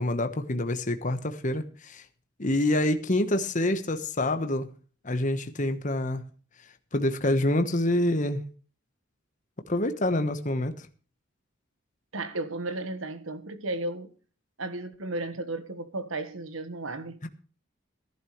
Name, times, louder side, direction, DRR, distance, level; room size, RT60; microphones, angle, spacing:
voice 1, 0.0-2.0 2.4-4.7 5.0-6.2 6.9-8.4 9.7-10.7 17.2-17.3, left 1 dB, 40° left, 1.2 m, -26 dB
voice 2, 12.1-14.1 14.6-17.2, right 2 dB, 90° right, 1.5 m, -34 dB
17.5 x 11.5 x 3.2 m
head